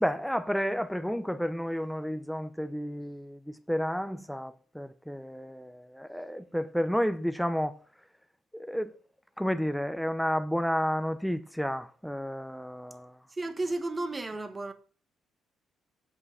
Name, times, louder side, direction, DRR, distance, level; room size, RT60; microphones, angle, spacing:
voice 1, 0.0-3.4 3.7-7.8 8.5-8.9 9.4-13.2, equal, ahead, 0.6 m, -31 dB
voice 2, 13.3-14.7, right 2 dB, 20° right, 1.2 m, -33 dB
8.3 x 5.5 x 7.1 m
cardioid pair, 115°, 0 cm